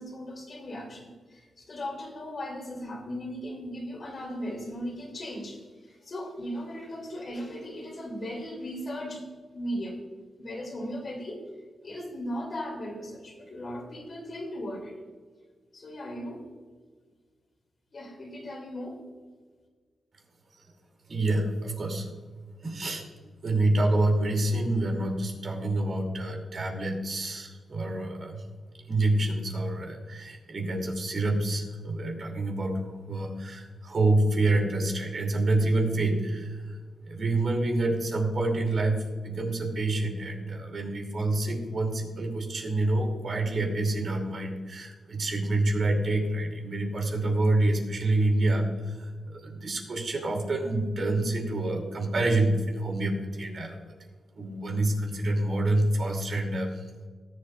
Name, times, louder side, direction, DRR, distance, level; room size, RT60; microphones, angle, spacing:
voice 1, 0.0-9.3 9.5-10.0 10.4-11.4 11.8-14.9 15.7-16.4 17.9-19.0, equal, 50° left, 1 dB, 2.7 m, -37 dB
voice 2, 21.1-22.1 22.6-23.0 23.4-28.4 28.9-32.8 33.1-36.8 37.1-53.8 54.4-56.8, right 2 dB, 55° right, 1 dB, 2.6 m, -27 dB
19.0 x 7.6 x 2.4 m, 1.5 s
cardioid pair, 90°, 0 cm